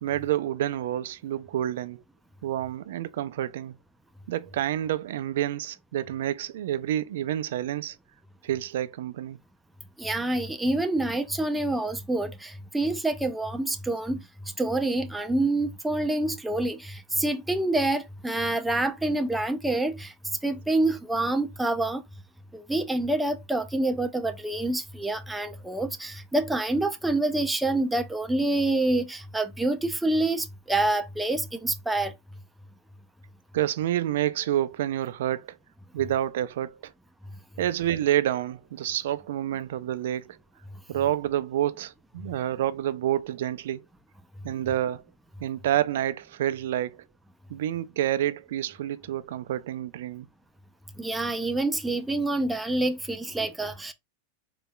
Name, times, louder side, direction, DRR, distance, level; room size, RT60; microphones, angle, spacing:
voice 1, 0.0-2.0 2.4-3.7 4.3-8.0 8.4-9.4 33.5-35.6 35.9-36.9 37.6-40.4 40.9-43.8 44.4-45.0 45.4-47.0 47.5-50.3, right 12 dB, 75° right, 0.4 m, -28 dB
voice 2, 10.0-14.2 14.6-20.1 20.4-22.0 22.5-32.1 51.0-53.9, right 2 dB, 5° right, 0.3 m, -27 dB
4.1 x 2.2 x 3.7 m
supercardioid pair, 170°, 0 cm